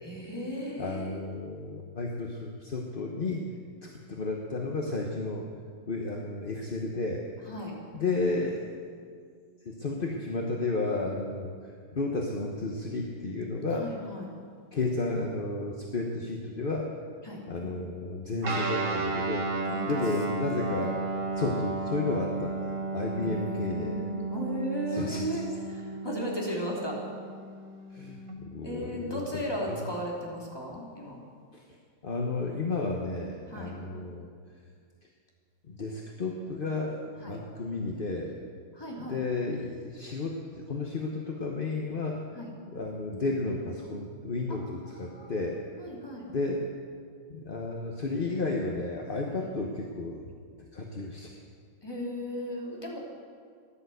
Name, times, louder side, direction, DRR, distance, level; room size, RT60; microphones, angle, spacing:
voice 1, 0.0-1.2 7.5-7.8 13.8-14.3 17.2-17.4 19.6-20.0 20.8-20.9 23.1-27.0 28.6-31.2 33.5-33.8 37.2-37.4 38.7-39.2 42.3-42.5 44.5-44.6 45.0-45.3 45.8-46.3 49.3-49.4 51.8-53.0, equal, 10° left, -3 dB, 3.0 m, -36 dB
voice 2, 0.8-3.6 3.8-5.5 5.9-7.3 7.9-8.6 9.6-13.9 14.7-16.9 17.5-21.0 21.3-24.0 24.9-25.4 27.9-29.8 31.5-31.6 32.0-34.3 35.7-38.3 39.0-42.2 42.7-45.6 46.3-46.7 47.3-50.3 50.7-51.4, left 3 dB, 35° left, 0 dB, 1.0 m, -32 dB
Guitar, 18.4-28.3, right 3 dB, 40° right, 1.8 m, -33 dB
15.0 x 11.0 x 7.9 m, 2.1 s
omnidirectional pair, 2.2 m